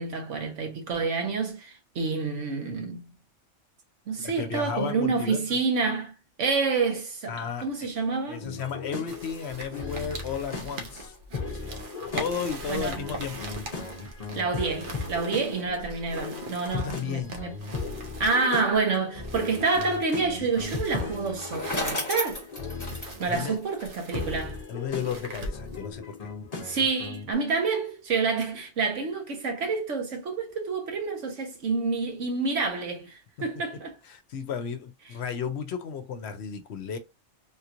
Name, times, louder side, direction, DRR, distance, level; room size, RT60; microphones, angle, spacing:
voice 1, 0.0-3.1 4.1-6.1 6.4-7.4 7.6-8.4 12.7-13.0 14.3-17.6 18.2-22.4 23.2-24.6 26.6-33.9, right 4 dB, 80° right, 1.5 m, -28 dB
voice 2, 4.2-5.4 7.3-7.9 8.3-11.2 11.5-11.9 12.1-13.5 16.7-17.4 23.2-23.6 24.7-26.3 33.4-33.5 34.0-37.0, left 7 dB, 70° left, 0.8 m, -34 dB
sound 1, 8.4-27.3, left 4 dB, 40° left, 0.8 m, -37 dB
sound 2, 9.1-25.9, right 2 dB, 50° right, 0.8 m, -42 dB
Bicycle, 21.1-24.3, left 1 dB, 15° left, 1.1 m, -34 dB
3.5 x 2.9 x 2.5 m
omnidirectional pair, 1.2 m